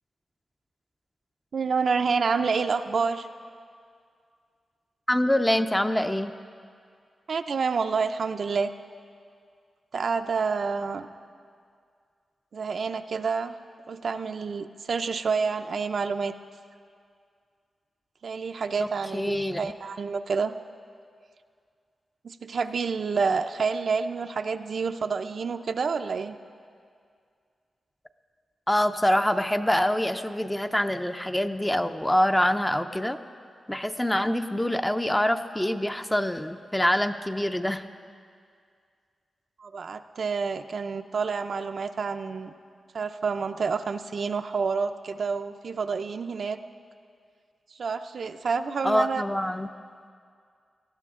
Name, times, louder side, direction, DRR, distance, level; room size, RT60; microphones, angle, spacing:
voice 1, 1.5-3.3 7.3-8.7 9.9-11.1 12.5-13.5 13.9-16.3 18.2-20.5 22.2-26.4 39.6-42.5 42.9-46.6 47.7-49.2, right 5 dB, 65° right, 8 dB, 0.5 m, -28 dB
voice 2, 5.1-6.3 18.8-18.9 19.1-19.7 28.7-33.2 33.7-37.8 48.8-49.7, left 1 dB, 10° left, 8 dB, 0.5 m, -25 dB
19.0 x 14.0 x 3.7 m, 2.2 s
wide cardioid pair, 95°, 0 cm